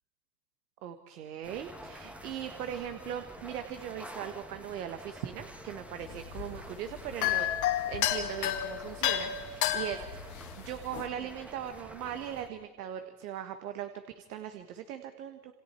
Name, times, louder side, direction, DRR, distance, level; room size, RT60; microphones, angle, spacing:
voice 1, 0.8-7.5 7.9-10.3 10.6-13.9 14.1-15.5, right 10 dB, 80° right, 8 dB, 1.6 m, -39 dB
sound 1, 1.4-12.5, equal, 5° right, 1.2 m, -48 dB
sound 2, 6.0-11.1, left 12 dB, 40° left, 2.2 m, -32 dB
28.5 x 28.0 x 4.5 m, 1.5 s
supercardioid pair, 140°, 45 cm